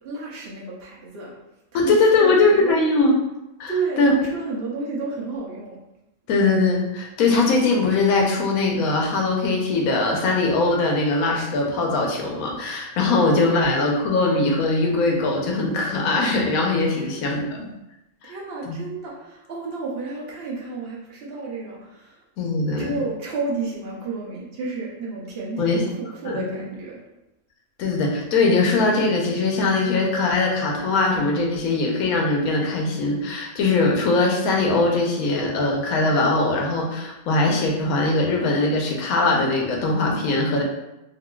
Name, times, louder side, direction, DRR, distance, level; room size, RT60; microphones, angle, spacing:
voice 1, 0.0-1.3 1.7-2.8 3.7-5.8 13.4-14.0 16.9-17.5 18.2-22.2 22.8-27.0, right 3 dB, 50° right, -4 dB, 0.9 m, -31 dB
voice 2, 1.7-3.1 3.6-3.7 4.0-4.1 6.3-17.6 18.2-18.3 18.7-18.8 22.4-23.0 25.6-25.8 26.2-26.5 27.8-40.6, left 3 dB, 80° left, 0 dB, 1.1 m, -21 dB
3.7 x 2.5 x 2.3 m, 0.92 s
omnidirectional pair, 1.5 m